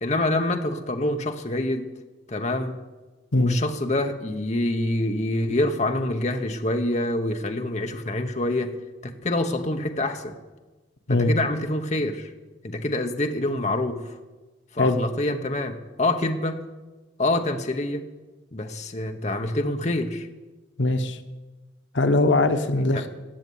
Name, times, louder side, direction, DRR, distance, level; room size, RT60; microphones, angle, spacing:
voice 1, 0.0-1.9 2.3-2.8 3.3-8.7 9.0-10.3 11.1-12.3 12.6-14.1 14.7-16.6 17.2-18.1 18.5-20.3 22.8-23.0, left 1 dB, 40° left, 6 dB, 0.9 m, -26 dB
voice 2, 20.8-21.2 21.9-23.1, left 2 dB, 90° left, 9 dB, 1.0 m, -21 dB
16.5 x 6.8 x 9.2 m, 1.2 s
head